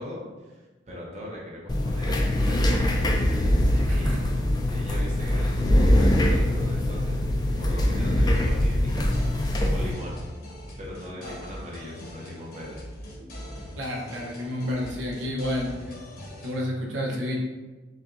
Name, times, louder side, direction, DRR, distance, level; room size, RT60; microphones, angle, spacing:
voice 1, 0.0-2.9 3.7-4.4 4.7-7.2 7.6-9.1 9.4-10.2 10.8-12.8, equal, 40° right, -4 dB, 1.0 m, -40 dB
sound 1, 1.7-9.9, left 1 dB, 20° left, 0.4 m, -23 dB
voice 2, 3.9-4.2 11.2-11.4 13.8-16.0 16.4-17.4, left 1 dB, 80° right, -2 dB, 0.9 m, -30 dB
sound 2, 8.3-16.7, left 1 dB, 55° left, 1.0 m, -42 dB
5.9 x 2.3 x 2.6 m, 1.2 s
head